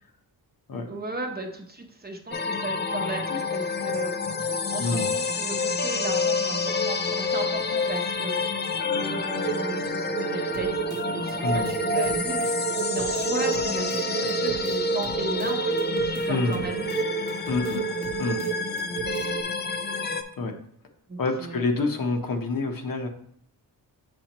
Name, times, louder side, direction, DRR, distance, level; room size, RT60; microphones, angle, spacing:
voice 1, 0.9-4.1 4.4-8.6 8.9-16.9 21.1-21.8, right 2 dB, 25° right, 2 dB, 0.9 m, -36 dB
sound 1, 2.3-20.2, left 3 dB, 25° left, 0.5 m, -28 dB
voice 2, 4.8-5.1 11.4-11.7 16.3-16.6 17.5-17.8 18.2-18.4 20.4-20.5 21.2-23.1, left 3 dB, 55° left, 4 dB, 1.0 m, -27 dB
sound 2, 9.4-19.4, right 13 dB, 50° right, 0.5 m, -32 dB
sound 3, 10.5-19.5, right 4 dB, 70° right, 0.8 m, -44 dB
7.0 x 6.2 x 3.0 m, 0.67 s
wide cardioid pair, 145°, 40 cm